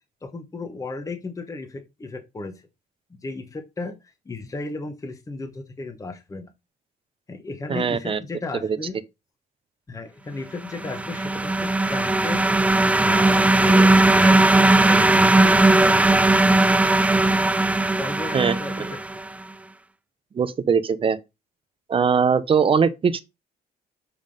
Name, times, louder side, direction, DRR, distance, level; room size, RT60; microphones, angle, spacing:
voice 1, 0.2-2.6 3.1-6.5 7.3-9.0 9.9-12.5 13.0-14.6 14.8-16.3 17.5-17.7 17.9-19.0, left 3 dB, 20° left, 1.1 m, -34 dB
voice 2, 7.7-8.2 18.3-18.5 20.3-21.2 21.9-23.2, right 6 dB, 30° right, 0.8 m, -20 dB
sound 1, 10.7-19.3, right 2 dB, 10° right, 0.4 m, -18 dB
7.4 x 3.6 x 5.3 m
cardioid pair, 110°, 17 cm